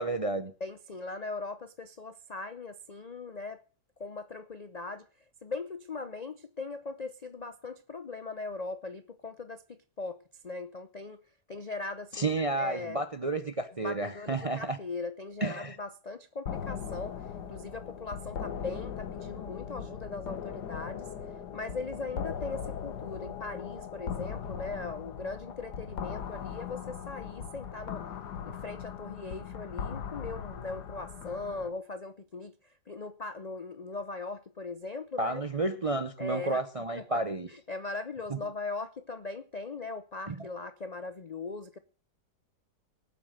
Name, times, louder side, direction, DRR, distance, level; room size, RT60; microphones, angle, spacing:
voice 1, 0.0-0.5 12.1-14.8 15.4-15.8 35.2-37.5 40.3-40.4, right 2 dB, 40° right, 0.5 m, -31 dB
voice 2, 0.6-3.6 4.0-5.1 5.4-11.2 11.5-13.1 13.8-21.1 21.5-28.1 28.5-35.4 36.2-36.6 37.0-37.2 37.5-41.8, left 3 dB, 50° left, 0.4 m, -39 dB
sound 1, 16.5-31.7, left 7 dB, 80° left, 1.7 m, -39 dB
19.0 x 7.6 x 6.5 m
omnidirectional pair, 1.7 m